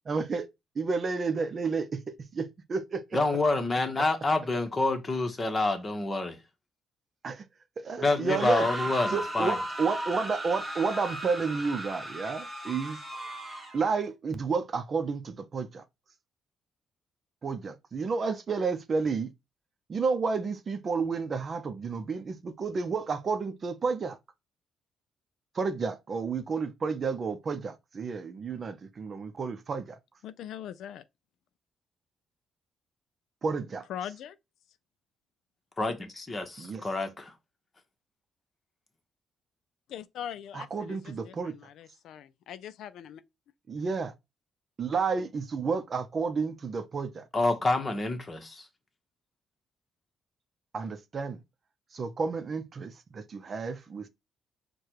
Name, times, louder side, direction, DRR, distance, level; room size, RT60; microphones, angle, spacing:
voice 1, 0.1-0.5 0.8-3.2 7.2-7.4 7.8-8.7 9.1-13.0 13.7-15.8 17.4-19.3 19.9-24.2 25.5-30.0 33.4-33.9 36.6-36.9 40.5-41.6 43.7-44.1 44.8-47.3 50.7-51.4 51.9-54.1, right 4 dB, 45° right, 0.6 m, -31 dB
voice 2, 3.1-6.4 8.0-9.6 35.8-37.3 47.3-48.7, left 2 dB, 25° left, 1.1 m, -28 dB
sound 1, 8.2-13.9, right 1 dB, 15° right, 1.3 m, -36 dB
voice 3, 30.2-31.0 33.9-34.4 39.9-43.2, left 10 dB, 75° left, 0.3 m, -41 dB
4.7 x 2.3 x 4.5 m
cardioid pair, 90°, 0 cm